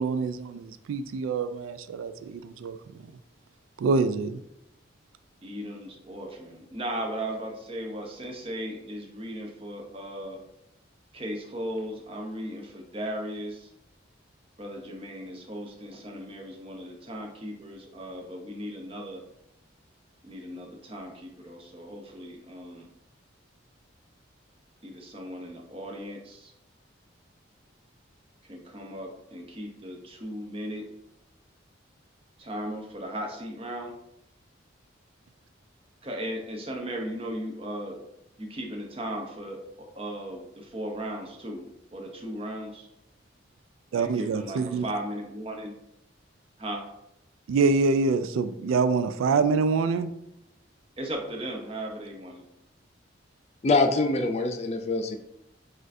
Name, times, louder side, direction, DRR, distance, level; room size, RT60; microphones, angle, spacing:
voice 1, 0.0-2.8 3.8-4.4 43.9-44.8 47.5-50.1, right 4 dB, 90° right, 0.3 m, -25 dB
voice 2, 5.4-10.4 11.1-13.7 14.6-19.2 20.2-22.9 24.8-26.5 28.4-30.9 32.4-34.0 36.0-38.0 38.4-42.9 43.9-45.8 46.6-46.9 51.0-52.4, right 1 dB, 30° right, 0.6 m, -37 dB
voice 3, 53.6-55.2, left 3 dB, 35° left, 0.3 m, -24 dB
6.1 x 2.5 x 2.6 m
head